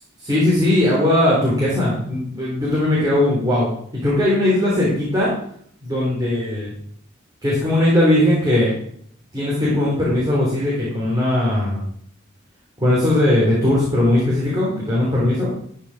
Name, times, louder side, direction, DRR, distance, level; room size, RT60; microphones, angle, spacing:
voice 1, 0.2-3.7 4.0-5.3 5.8-6.7 7.4-8.7 9.3-11.8 12.8-15.5, left 1 dB, 20° right, -6 dB, 3.5 m, -19 dB
13.5 x 5.7 x 4.9 m, 0.64 s
head